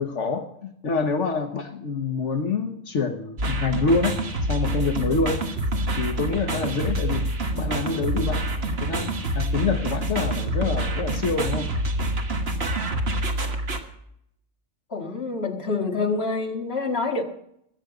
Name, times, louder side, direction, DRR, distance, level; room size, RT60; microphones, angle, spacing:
voice 1, 0.0-4.2 4.5-5.4 6.0-7.2 7.5-11.7, left 4 dB, 70° left, 5 dB, 1.4 m, -26 dB
sound 1, 3.4-13.8, right 1 dB, 55° right, 1.6 m, -26 dB
voice 2, 14.9-17.2, left 3 dB, 55° left, 2 dB, 1.9 m, -26 dB
21.0 x 8.0 x 4.9 m, 0.74 s
omnidirectional pair, 1.3 m